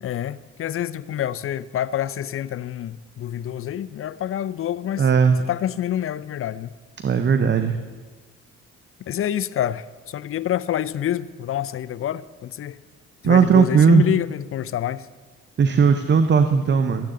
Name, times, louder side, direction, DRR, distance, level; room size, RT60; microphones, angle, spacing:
voice 1, 0.0-5.1 5.5-6.7 9.1-12.8 13.2-15.1, left 11 dB, 45° left, 0.5 m, -27 dB
voice 2, 5.0-5.4 7.0-7.8 13.2-14.0 15.6-17.1, right 6 dB, 35° right, 0.7 m, -17 dB
13.0 x 9.6 x 3.8 m
supercardioid pair, 55°, 32 cm